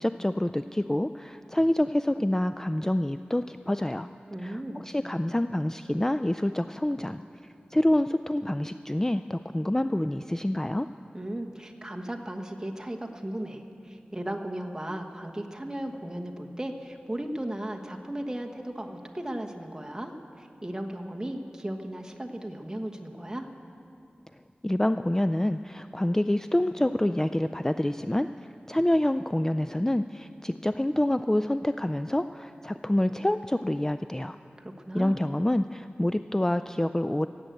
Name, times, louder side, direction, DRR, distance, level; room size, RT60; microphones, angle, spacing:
voice 1, 0.0-4.1 4.4-7.2 7.7-10.9 24.6-34.4 34.9-37.3, left 1 dB, 15° left, 11 dB, 0.3 m, -27 dB
voice 2, 4.3-4.9 11.1-23.5 34.6-35.2, right 1 dB, 20° right, 2 dB, 1.3 m, -36 dB
17.0 x 8.2 x 7.8 m, 2.7 s
wide cardioid pair, 50°, 4 cm